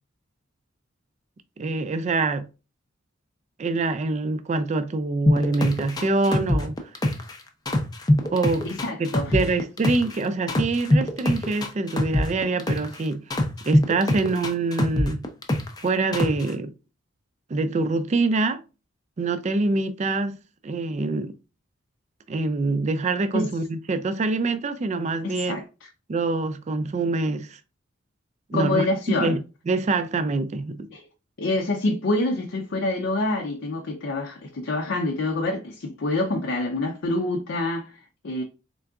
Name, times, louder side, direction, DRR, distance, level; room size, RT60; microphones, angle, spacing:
voice 1, 1.6-2.5 3.6-6.7 8.3-8.7 9.0-13.2 13.7-15.2 15.8-16.7 17.5-18.6 19.2-20.4 20.6-21.3 22.3-25.6 26.1-27.6 28.5-28.9 29.2-29.4 29.7-30.9, right 3 dB, 35° right, 0.4 m, -25 dB
sound 1, 5.3-7.4 7.7-10.2 10.5-13.0 13.3-15.8 16.1-16.5, left 1 dB, 20° left, 0.5 m, -22 dB
voice 2, 8.6-9.5 23.3-23.5 25.2-25.6 28.5-29.4 30.9-31.0 31.4-37.9 38.2-38.4, left 2 dB, 65° left, 0.5 m, -26 dB
3.8 x 3.4 x 2.4 m
head